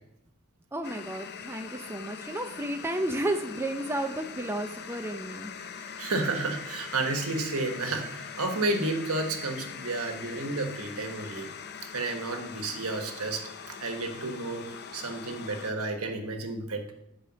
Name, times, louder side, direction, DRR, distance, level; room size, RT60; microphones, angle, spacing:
voice 1, 0.7-5.5, right 1 dB, 10° right, 5 dB, 0.5 m, -32 dB
sound 1, 0.8-15.7, left 7 dB, 45° left, 0.6 m, -42 dB
voice 2, 6.0-11.5 11.9-16.9, right 2 dB, 75° right, 4 dB, 1.4 m, -31 dB
9.0 x 5.0 x 6.0 m, 0.81 s
head